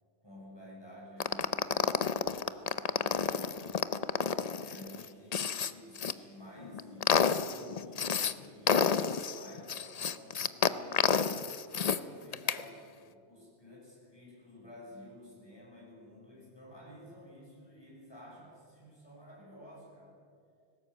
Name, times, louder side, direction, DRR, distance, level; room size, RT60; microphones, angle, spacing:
voice 1, 0.2-3.9 4.6-11.1 11.7-20.1, left 1 dB, 20° left, -4 dB, 6.5 m, -52 dB
sound 1, 1.2-6.1 6.6-8.3 8.7-12.0 12.3-12.6, left 6 dB, 40° left, 0.6 m, -30 dB
19.0 x 17.0 x 8.4 m, 2.3 s
omnidirectional pair, 1.2 m